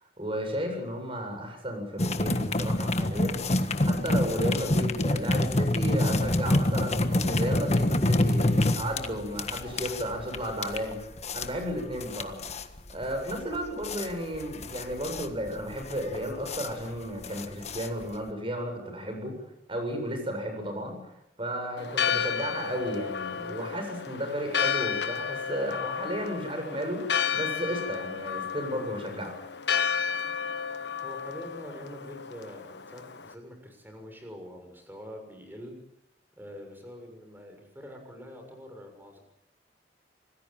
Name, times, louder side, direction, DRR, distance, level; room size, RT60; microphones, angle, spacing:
voice 1, 0.2-11.0 11.3-12.4 12.9-19.3 19.7-21.0 21.4-29.3, equal, 30° right, 4 dB, 7.9 m, -33 dB
sound 1, 2.0-18.3, left 1 dB, 40° left, 1.5 m, -27 dB
Church bell, 21.8-33.3, left 7 dB, 75° left, 1.4 m, -32 dB
voice 2, 31.0-35.8 36.4-39.2, equal, 10° right, 4 dB, 6.9 m, -45 dB
26.5 x 19.5 x 9.1 m, 0.81 s
head